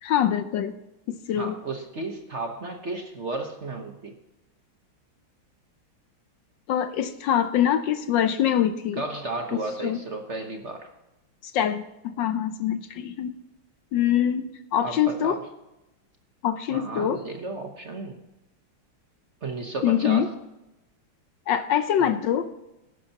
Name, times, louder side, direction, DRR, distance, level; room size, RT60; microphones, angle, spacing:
voice 1, 0.0-0.7 1.1-1.6 6.7-9.0 9.8-10.0 11.4-13.4 13.9-15.4 16.4-17.2 19.8-20.3 21.5-22.5, left 10 dB, 70° left, 10 dB, 1.2 m, -24 dB
voice 2, 1.3-4.1 9.0-10.9 14.8-15.4 16.7-18.2 19.4-20.3 22.0-22.1, right 2 dB, 40° right, 4 dB, 1.1 m, -33 dB
18.0 x 10.0 x 2.9 m, 0.94 s
omnidirectional pair, 2.2 m